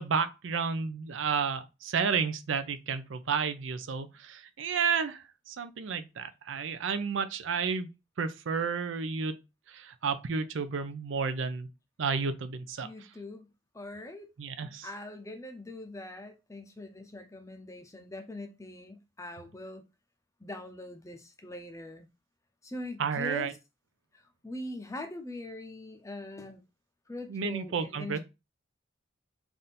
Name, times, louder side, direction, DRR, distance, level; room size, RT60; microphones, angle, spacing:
voice 1, 0.0-7.9 8.2-9.4 9.7-11.7 12.0-12.9 14.4-14.9 23.0-23.5 27.3-28.2, right 5 dB, 80° right, 0.5 m, -31 dB
voice 2, 12.8-13.5 13.7-14.3 14.6-19.8 20.4-22.1 22.6-23.5 24.4-26.6 27.1-28.2, left 1 dB, 15° left, 0.5 m, -42 dB
3.5 x 2.6 x 4.1 m
head